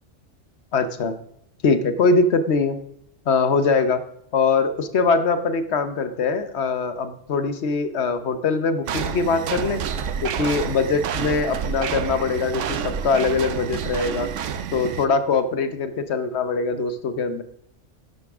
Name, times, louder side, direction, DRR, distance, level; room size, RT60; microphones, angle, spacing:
voice 1, 0.7-1.2 1.6-2.8 3.3-4.0 4.3-9.8 10.2-14.3 14.7-17.4, left 4 dB, 65° left, 10 dB, 1.1 m, -22 dB
sound 1, 8.8-15.1, right 7 dB, 80° right, 1.0 m, -29 dB
12.0 x 11.0 x 3.5 m, 0.73 s
omnidirectional pair, 1.3 m